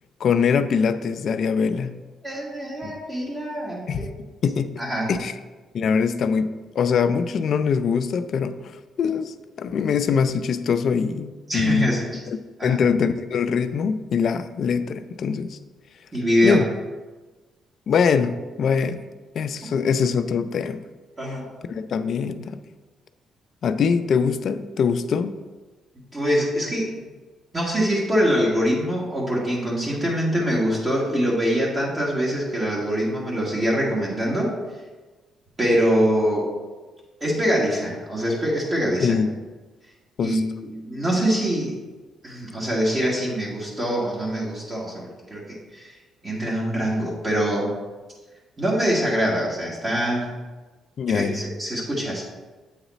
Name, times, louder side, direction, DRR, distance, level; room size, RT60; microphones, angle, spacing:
voice 1, 0.2-1.9 2.8-2.9 3.9-4.1 4.4-4.7 5.1-5.3 5.7-8.6 9.0-11.9 12.6-15.6 16.4-16.6 17.9-19.1 19.4-20.8 21.7-22.6 23.6-25.4 39.0-39.3 40.2-40.4 51.0-51.5, left 6 dB, 60° left, 11 dB, 0.4 m, -23 dB
voice 2, 2.2-3.9 4.8-5.2 11.5-12.2 12.6-12.8 16.1-16.6 21.2-21.5 26.1-27.0 27.5-34.6 35.6-36.5 37.2-39.2 40.2-41.7 42.2-45.4 45.7-46.0 46.2-47.7 48.6-50.4 51.1-52.2, equal, 30° right, -5 dB, 1.6 m, -24 dB
8.1 x 4.0 x 4.0 m, 1.3 s
cardioid pair, 90°, 0 cm